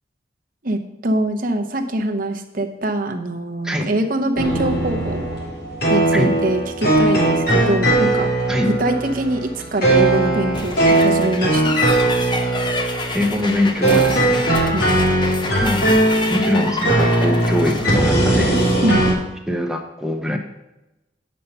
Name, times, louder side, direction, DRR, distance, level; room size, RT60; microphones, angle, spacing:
voice 1, 0.6-5.2 5.9-8.3 8.6-11.9 14.7-15.1 18.8-19.3, right 1 dB, 45° right, 4 dB, 0.9 m, -23 dB
sound 1, 4.4-19.1, right 1 dB, 50° left, 2.7 m, -19 dB
sound 2, 10.5-18.9, left 3 dB, 25° left, 0.7 m, -29 dB
voice 2, 13.1-14.5 15.6-15.8 16.3-18.6 19.5-20.4, left 1 dB, 5° right, 2 dB, 0.8 m, -22 dB
8.5 x 5.4 x 5.6 m, 0.96 s
head